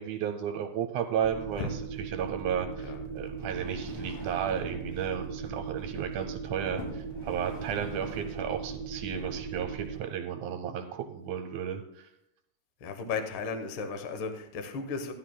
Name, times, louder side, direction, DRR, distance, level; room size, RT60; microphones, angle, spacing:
voice 1, 0.0-12.1, right 8 dB, 75° right, 5 dB, 2.0 m, -33 dB
sound 1, 1.2-10.0, right 5 dB, 5° left, 3.8 m, -38 dB
sound 2, 3.3-5.0 5.8-6.0 6.7-8.6 9.3-9.4, left 2 dB, 55° left, 3.7 m, -45 dB
voice 2, 12.8-15.1, left 4 dB, 80° left, 6 dB, 1.1 m, -35 dB
16.0 x 12.0 x 2.2 m, 0.81 s
omnidirectional pair, 3.8 m